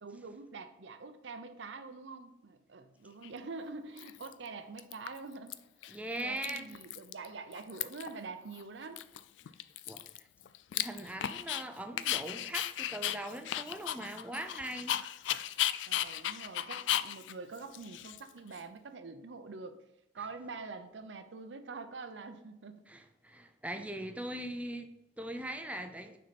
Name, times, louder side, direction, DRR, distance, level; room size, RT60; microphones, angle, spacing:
voice 1, 0.0-5.6 6.2-9.0 15.9-19.8 20.1-22.8, right 4 dB, 80° right, 8 dB, 0.6 m, -45 dB
Dog, 3.2-3.3 4.0-4.5 4.8-5.5 5.8-5.9 6.2-7.3 7.5-8.2 8.5-8.6 9.0-11.6 12.0-18.6, left 12 dB, 85° left, 0.3 m, -36 dB
voice 2, 5.9-6.8 9.9-10.0 10.7-14.9 22.9-26.2, right 1 dB, 10° right, 7 dB, 0.5 m, -40 dB
6.2 x 4.4 x 4.2 m, 0.90 s
head